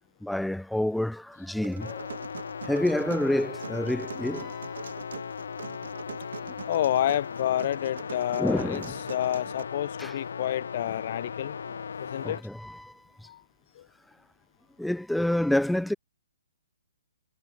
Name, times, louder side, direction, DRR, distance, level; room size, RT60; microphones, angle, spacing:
voice 1, 0.2-2.1 2.6-4.8 6.5-6.6 8.4-8.9 10.0-10.1 12.2-13.3 14.8-15.9, left 1 dB, ahead, 0.7 m, -28 dB
sound 1, 1.6-9.6, right 7 dB, 70° right, 1.5 m, -43 dB
sound 2, 1.8-12.4, left 6 dB, 75° left, 3.2 m, -38 dB
voice 2, 6.7-8.8 9.1-11.6 12.0-12.4 13.3-13.4 13.8-13.9, left 12 dB, 40° left, 0.7 m, -29 dB
Bowed string instrument, 7.7-11.5, left 8 dB, 55° left, 3.7 m, -54 dB
hypercardioid pair, 170°, 0 cm